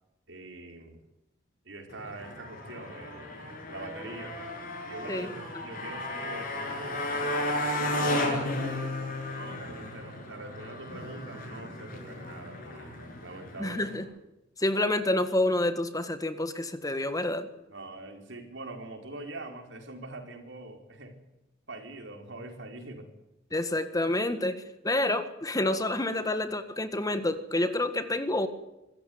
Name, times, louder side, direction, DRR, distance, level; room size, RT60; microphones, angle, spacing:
voice 1, 0.3-1.0 1.6-3.4 3.7-4.3 4.8-8.8 9.3-13.9 17.7-21.2 21.7-23.1, right 2 dB, 75° right, 4 dB, 4.7 m, -44 dB
Motorcycle, 1.9-14.0, left 1 dB, 50° left, 7.4 m, -34 dB
voice 2, 13.6-14.0 14.6-17.5 23.5-28.5, left 1 dB, 20° left, 10 dB, 1.7 m, -28 dB
25.0 x 15.0 x 9.5 m, 0.92 s
head